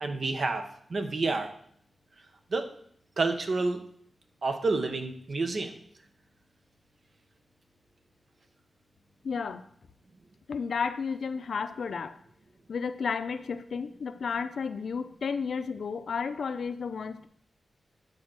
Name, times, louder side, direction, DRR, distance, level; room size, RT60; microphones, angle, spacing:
voice 1, 0.0-0.6 0.9-1.5 2.5-2.7 3.2-3.8 4.4-5.7, right 3 dB, 55° right, 6 dB, 1.0 m, -29 dB
voice 2, 9.2-9.7 10.5-12.2 12.7-17.3, left 5 dB, 75° left, 11 dB, 0.5 m, -32 dB
9.4 x 4.5 x 6.1 m, 0.65 s
wide cardioid pair, 140°, 0 cm